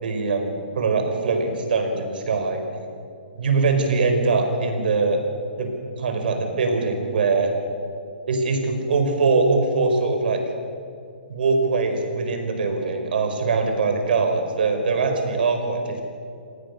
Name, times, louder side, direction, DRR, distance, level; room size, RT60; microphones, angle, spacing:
voice 1, 0.0-2.6 3.4-5.2 5.6-5.7 6.0-7.5 8.3-10.4 11.3-16.0, right 4 dB, 65° right, 5 dB, 4.9 m, -22 dB
27.5 x 18.5 x 6.7 m, 2.5 s
hypercardioid pair, 160°, 5 cm